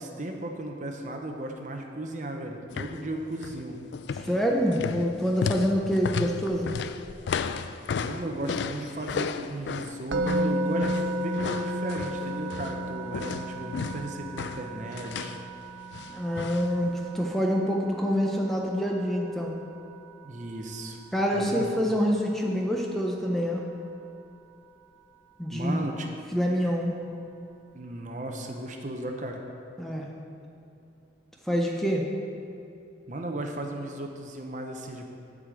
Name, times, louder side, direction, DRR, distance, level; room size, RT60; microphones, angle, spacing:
voice 1, 0.0-3.8 8.0-15.3 20.2-21.0 21.3-21.7 25.5-26.1 27.7-29.4 33.1-35.1, right 1 dB, 40° right, 3 dB, 0.7 m, -35 dB
sound 1, 2.7-3.0 3.3-3.6 3.9-12.8 13.1-15.4 15.9-16.7 17.0-17.1, left 6 dB, 70° left, 0.3 m, -34 dB
voice 2, 4.1-6.7 16.1-19.5 21.1-23.6 25.4-25.8 26.3-26.9 29.8-30.1 31.5-32.0, equal, ahead, -1 dB, 0.6 m, -26 dB
Musical instrument, 10.1-21.2, right 1 dB, 85° right, 0.5 m, -34 dB
8.5 x 5.0 x 7.5 m, 2.6 s
head